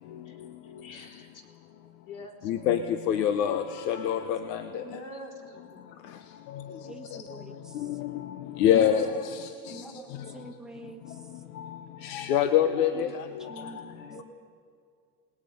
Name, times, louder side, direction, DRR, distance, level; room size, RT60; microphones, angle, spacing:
voice 1, 0.6-1.3 2.1-2.5 4.8-5.8 6.5-7.1 8.6-10.3 14.0-14.2, equal, 40° left, 1 dB, 3.6 m, -45 dB
voice 2, 2.4-2.8 3.1-4.8 7.9-8.1 8.6-9.5 11.6-11.7 12.0-13.1, left 9 dB, 85° left, 9 dB, 1.1 m, -25 dB
voice 3, 6.9-7.5 9.7-10.1 10.3-11.0 13.5-14.0, right 3 dB, ahead, 2 dB, 1.3 m, -45 dB
28.0 x 19.5 x 5.4 m, 2.3 s
supercardioid pair, 150°, 48 cm